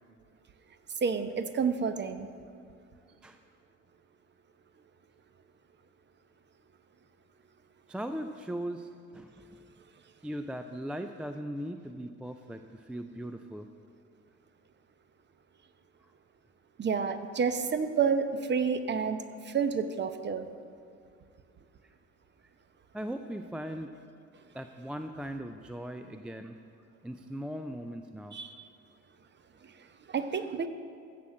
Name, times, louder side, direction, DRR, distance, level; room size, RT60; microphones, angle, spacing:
voice 1, 1.0-2.3 16.8-20.5 28.3-28.6 30.1-30.7, right 6 dB, 30° right, 10 dB, 0.8 m, -29 dB
voice 2, 7.9-9.6 10.2-13.7 21.8-21.9 22.9-23.9 24.5-26.6 27.0-28.4, equal, 5° right, 8 dB, 0.3 m, -39 dB
15.0 x 6.1 x 6.4 m, 2.3 s
figure-of-eight pair, 60°, 39 cm